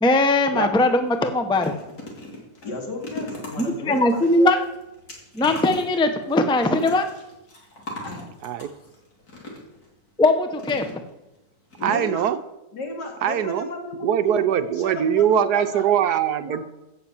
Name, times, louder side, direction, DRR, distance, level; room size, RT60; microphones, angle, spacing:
voice 1, 0.0-1.7 3.6-4.6 5.3-7.0 10.2-10.9, left 2 dB, 5° left, 7 dB, 0.6 m, -20 dB
sound 1, 0.7-0.8 1.1-9.9 10.6-11.4 11.7-11.8 12.1-12.2, left 1 dB, 60° left, 3.6 m, -40 dB
voice 2, 2.6-4.5 8.0-8.3 9.5-9.6 11.8-12.3 12.7-15.8 16.4-16.6, left 2 dB, 85° left, 1 dB, 3.1 m, -34 dB
voice 3, 11.8-12.4 13.2-13.7 14.0-16.6, right 9 dB, 70° right, 12 dB, 1.2 m, -22 dB
16.0 x 6.7 x 7.1 m, 0.96 s
omnidirectional pair, 1.8 m